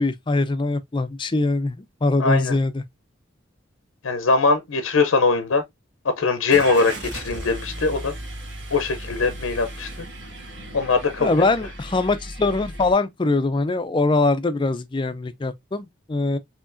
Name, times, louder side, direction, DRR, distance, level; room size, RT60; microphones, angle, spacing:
voice 1, 0.0-2.8 11.2-16.4, left 2 dB, 25° left, 0.4 m, -22 dB
voice 2, 2.2-2.6 4.0-5.6 6.0-8.1 8.7-9.9 10.7-11.3, left 4 dB, 85° left, 0.6 m, -21 dB
Car / Engine starting, 6.5-12.9, right 1 dB, 60° right, 1.4 m, -36 dB
4.7 x 2.8 x 2.5 m
head